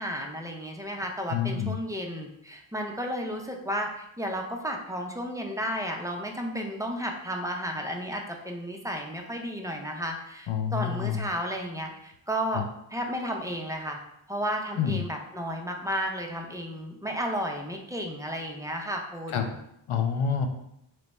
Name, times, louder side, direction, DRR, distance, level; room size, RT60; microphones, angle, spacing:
voice 1, 0.0-14.0 14.3-19.6, equal, 5° right, 1 dB, 0.4 m, -33 dB
voice 2, 1.3-1.8 10.5-11.3 12.5-12.7 14.8-15.0 19.3-19.5 19.9-20.5, left 7 dB, 80° left, 5 dB, 0.7 m, -27 dB
3.4 x 3.1 x 4.0 m, 0.79 s
wide cardioid pair, 130°, 48 cm